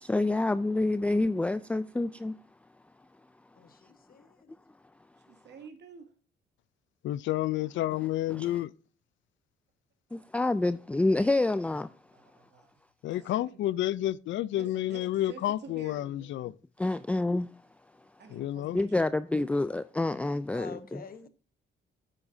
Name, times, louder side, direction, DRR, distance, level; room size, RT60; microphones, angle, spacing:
voice 1, 0.0-2.3 8.4-8.5 10.1-11.9 16.8-17.5 18.7-21.0, left 2 dB, 5° left, 0.3 m, -27 dB
voice 2, 3.6-4.5 20.5-21.3, left 6 dB, 45° left, 1.1 m, -47 dB
voice 3, 5.3-6.1 12.1-12.7 13.1-13.7 14.5-16.3 17.0-17.1 17.9-19.3, right 6 dB, 60° right, 2.2 m, -51 dB
voice 4, 7.0-8.7 13.0-16.5 18.3-18.8, left 14 dB, 70° left, 0.4 m, -30 dB
9.8 x 8.6 x 2.7 m
cardioid pair, 90°, 20 cm